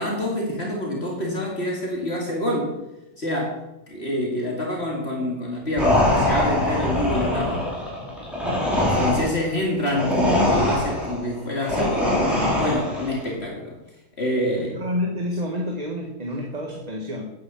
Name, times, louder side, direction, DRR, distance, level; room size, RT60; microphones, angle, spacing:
voice 1, 0.0-2.7 3.2-7.7 8.3-8.5 8.7-13.7 14.2-14.7, left 1 dB, 50° left, -1 dB, 2.4 m, -26 dB
sound 1, 5.8-13.2, left 1 dB, ahead, 4.5 m, -23 dB
voice 2, 14.4-17.2, left 1 dB, 30° right, 0 dB, 1.7 m, -29 dB
9.9 x 9.5 x 7.1 m, 0.93 s
omnidirectional pair, 1.4 m